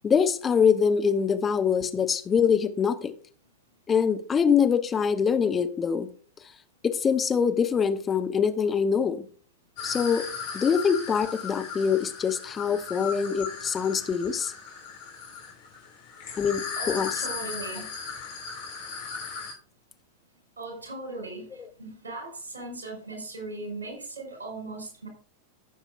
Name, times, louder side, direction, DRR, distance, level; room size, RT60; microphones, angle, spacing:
voice 1, 0.0-3.1 3.9-6.1 6.8-9.3 9.8-10.2 10.5-14.5 16.4-17.2, left 6 dB, 20° left, 9 dB, 0.9 m, -24 dB
sound 1, 9.8-19.5, left 5 dB, 55° left, 3.7 m, -37 dB
voice 2, 16.8-17.9 20.6-21.4 21.8-25.1, right 2 dB, 75° right, 1 dB, 5.0 m, -38 dB
16.5 x 7.3 x 2.6 m, 0.42 s
figure-of-eight pair, 90°, 0 cm